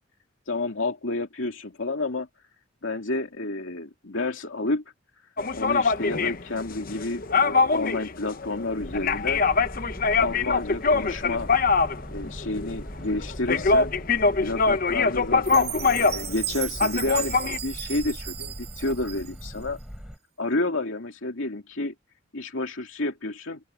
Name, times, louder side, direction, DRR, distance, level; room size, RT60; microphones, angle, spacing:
voice 1, 0.5-2.3 2.8-4.8 5.5-9.4 10.1-11.5 12.1-13.9 14.4-17.4 17.6-19.8 20.4-21.9 22.3-23.6, left 2 dB, 75° left, 2.5 m, -30 dB
sound 1, 5.4-16.4 16.7-17.6, left 4 dB, 45° left, 0.8 m, -23 dB
sound 2, 8.8-20.2, equal, 5° right, 7.6 m, -40 dB
Chime, 15.4-19.6, right 12 dB, 50° right, 2.1 m, -35 dB
open air
head